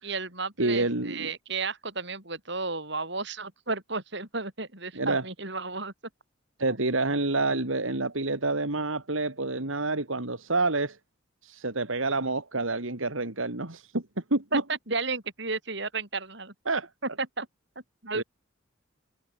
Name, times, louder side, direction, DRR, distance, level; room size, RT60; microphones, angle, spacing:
voice 1, 0.0-5.9 6.7-6.8 14.5-16.5 17.2-17.5 18.0-18.2, right 3 dB, 60° right, 7.9 m, -33 dB
voice 2, 0.6-1.3 4.9-5.2 6.6-11.0 11.4-14.0 14.3-14.4 16.7-16.9 18.1-18.2, right 2 dB, 80° right, 2.7 m, -28 dB
head